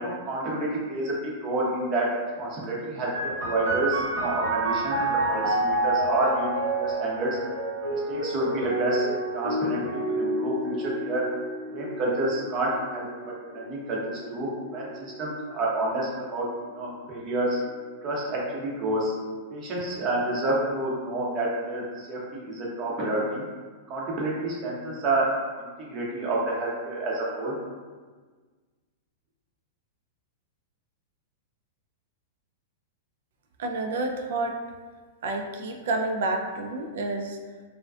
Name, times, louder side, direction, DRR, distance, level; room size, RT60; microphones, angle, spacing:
voice 1, 0.0-2.1 2.4-6.5 6.7-7.3 7.9-9.1 9.3-11.2 11.7-13.1 13.5-17.6 18.0-19.1 19.5-23.4 23.9-25.3 25.6-27.5, right 2 dB, 40° right, -4 dB, 0.7 m, -29 dB
sound 1, 3.1-16.4 17.2-18.0, right 2 dB, 85° right, 0.9 m, -30 dB
voice 2, 33.6-34.6 35.2-37.4, right 2 dB, 65° right, 4 dB, 0.3 m, -29 dB
2.4 x 2.2 x 2.3 m, 1.4 s
hypercardioid pair, 110°, 0 cm